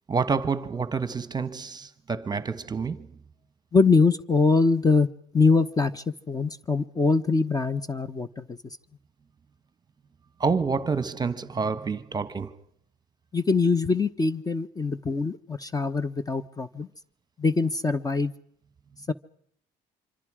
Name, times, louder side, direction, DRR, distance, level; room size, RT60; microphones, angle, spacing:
voice 1, 0.1-3.2 10.4-12.6, right 5 dB, 25° right, 1.2 m, -28 dB
voice 2, 3.7-5.1 5.3-8.6 13.3-16.9 17.4-18.3 19.1-19.2, left 4 dB, 20° left, 0.9 m, -23 dB
26.0 x 25.5 x 4.9 m
cardioid pair, 110°, 17 cm